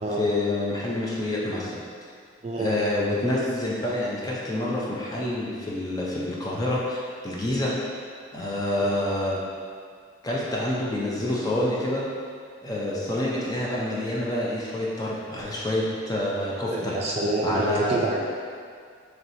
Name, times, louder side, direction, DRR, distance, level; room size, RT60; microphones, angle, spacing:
voice 1, 0.2-1.8 2.6-7.7 8.3-9.4 10.2-12.0 12.6-16.9 17.4-18.0, left 1 dB, 20° left, -5 dB, 0.5 m, -27 dB
voice 2, 2.4-2.7 8.7-8.9 16.7-18.3, right 2 dB, 35° right, -3 dB, 0.4 m, -27 dB
4.5 x 3.2 x 2.7 m, 2.1 s
head